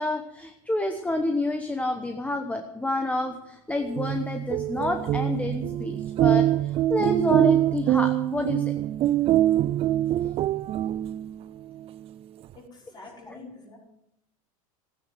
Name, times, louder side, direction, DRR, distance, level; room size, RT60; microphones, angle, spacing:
voice 1, 0.0-8.7 13.3-13.4, left 2 dB, 10° left, 5 dB, 1.1 m, -29 dB
sound 1, 3.8-11.4, right 13 dB, 35° right, 0.5 m, -24 dB
voice 2, 12.5-13.8, left 3 dB, 25° left, -2 dB, 5.7 m, -46 dB
15.0 x 9.5 x 7.9 m, 0.81 s
supercardioid pair, 120°, 18 cm